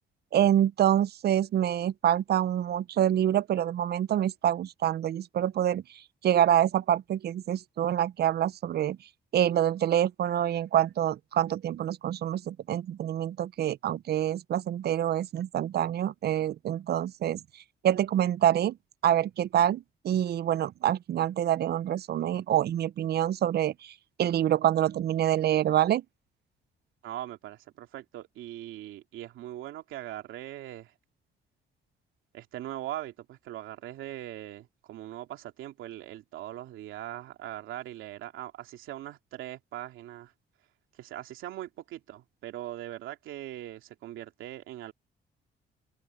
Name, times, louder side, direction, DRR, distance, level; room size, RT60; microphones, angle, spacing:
voice 1, 0.3-5.8 6.2-9.0 9.3-17.4 17.8-18.8 19.0-23.9 24.2-26.0, right 11 dB, 55° right, 0.5 m, -26 dB
voice 2, 27.0-30.9 32.3-40.3 41.0-44.9, right 13 dB, 90° right, 2.7 m, -41 dB
open air
cardioid pair, 90°, 20 cm